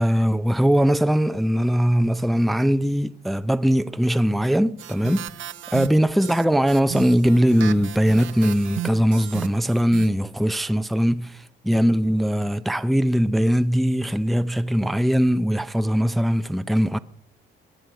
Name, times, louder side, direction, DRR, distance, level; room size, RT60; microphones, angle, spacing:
voice 1, 0.0-5.3 5.7-17.0, equal, ahead, 0.5 m, -20 dB
sound 1, 4.8-10.1, right 13 dB, 75° right, 0.8 m, -35 dB
21.0 x 7.7 x 6.6 m
cardioid pair, 90°, 20 cm